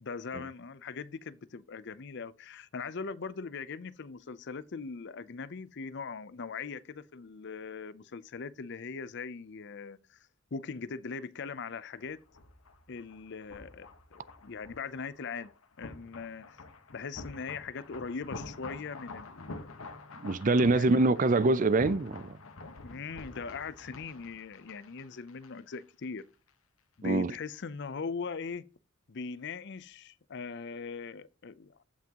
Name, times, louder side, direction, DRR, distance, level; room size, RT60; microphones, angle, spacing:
voice 1, 0.0-10.2 10.5-12.2 12.9-15.5 15.8-16.6 16.9-19.6 20.6-21.0 22.8-26.2 27.0-28.6 29.1-31.7, left 5 dB, 55° left, 0.6 m, -40 dB
sound 1, 12.0-25.8 26.0-26.2, left 2 dB, 85° left, 1.2 m, -47 dB
voice 2, 20.2-22.4 27.0-27.3, right 3 dB, 40° right, 0.5 m, -25 dB
14.5 x 6.0 x 2.9 m
head